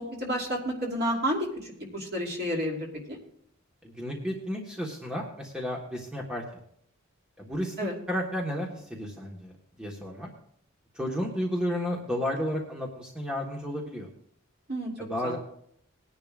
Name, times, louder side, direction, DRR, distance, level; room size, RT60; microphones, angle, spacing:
voice 1, 0.0-3.2 7.8-7.9 14.7-14.9 15.2-15.3, equal, 50° right, -1 dB, 2.7 m, -31 dB
voice 2, 3.8-6.4 7.4-9.5 9.8-10.3 10.9-14.1 15.0-15.4, equal, 5° right, -2 dB, 1.3 m, -32 dB
20.0 x 10.5 x 2.5 m, 0.69 s
head